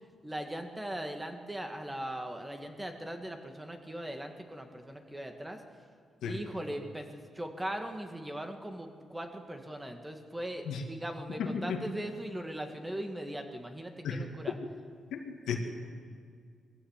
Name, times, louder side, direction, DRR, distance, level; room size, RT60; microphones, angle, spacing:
voice 1, 0.2-5.6 6.2-14.5, right 1 dB, 15° right, 5 dB, 2.1 m, -39 dB
voice 2, 11.4-11.8 14.0-14.3 15.1-15.6, left 6 dB, 90° left, 3 dB, 2.4 m, -34 dB
21.0 x 15.5 x 8.3 m, 2.1 s
cardioid pair, 90°, 0 cm